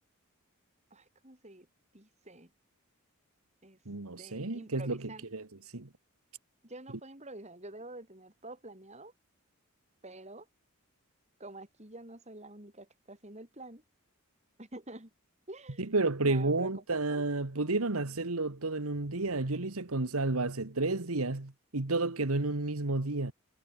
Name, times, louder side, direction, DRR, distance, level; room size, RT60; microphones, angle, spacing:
voice 1, 0.9-1.7 1.9-2.5 3.6-3.8 4.2-5.3 6.6-9.1 10.0-10.5 11.4-13.8 14.6-15.1 15.5-17.2, right 2 dB, 30° right, 4.7 m, -48 dB
voice 2, 3.8-5.0 5.3-5.4 5.7-5.9 15.9-23.3, right 2 dB, 85° right, 1.7 m, -31 dB
head